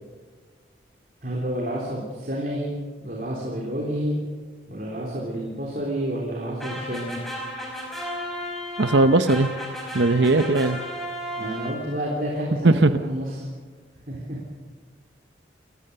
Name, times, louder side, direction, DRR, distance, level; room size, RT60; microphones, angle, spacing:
voice 1, 1.2-2.7 3.0-4.2 4.7-7.2 11.4-13.4 14.1-14.5, equal, 50° right, -2 dB, 3.5 m, -29 dB
sound 1, 6.6-12.1, equal, ahead, 5.2 m, -34 dB
voice 2, 8.8-9.5 9.9-10.8 12.6-12.9, right 2 dB, 75° right, 10 dB, 0.8 m, -18 dB
28.0 x 15.5 x 6.7 m, 1.5 s
head